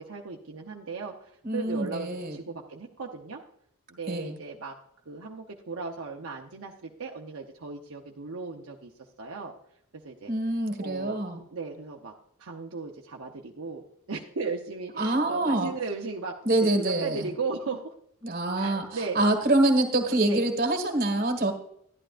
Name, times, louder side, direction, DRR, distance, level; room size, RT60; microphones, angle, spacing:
voice 1, 0.0-3.4 3.9-4.8 5.1-8.9 9.2-9.5 10.0-10.3 10.8-11.2 11.5-12.1 12.4-13.8 14.1-16.4 16.7-17.9 18.6-19.2 20.2-20.4, right 4 dB, 70° right, 0 dB, 0.8 m, -36 dB
voice 2, 1.4-2.4 4.1-4.4 10.3-11.4 15.0-15.7 16.4-17.2 18.2-18.8 19.1-21.5, right 1 dB, 40° right, 4 dB, 1.7 m, -25 dB
12.0 x 11.5 x 2.5 m, 0.70 s
head